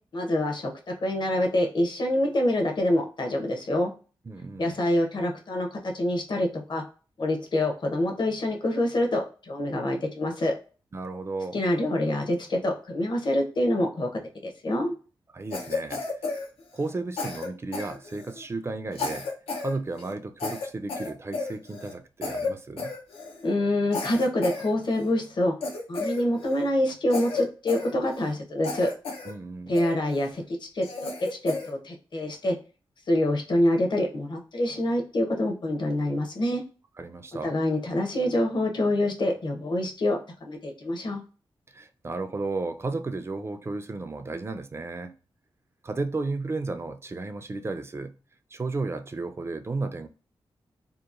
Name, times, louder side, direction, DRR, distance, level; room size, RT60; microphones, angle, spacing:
voice 1, 0.1-0.7 1.0-3.9 4.6-6.8 7.2-10.5 11.5-14.1 14.4-14.9 23.4-25.6 25.9-28.9 29.7-32.6 33.1-36.6 37.4-41.2, left 1 dB, 55° left, 0.8 m, -26 dB
voice 2, 4.3-4.8 10.9-11.6 15.3-16.1 16.7-19.3 19.6-23.0 29.2-29.8 37.0-37.6 41.7-45.1 45.8-48.2 48.5-50.1, right 3 dB, 25° right, 0.4 m, -33 dB
Cough, 15.5-16.9 17.2-18.4 18.9-19.7 20.0-20.1 20.4-21.9 22.2-22.5 22.8-23.4 23.9-25.1 25.6-26.7 27.1-28.3 28.6-29.3 29.7-30.3 30.8-31.7, left 3 dB, 90° left, 0.6 m, -33 dB
2.9 x 2.0 x 2.4 m
cardioid pair, 60°, 10 cm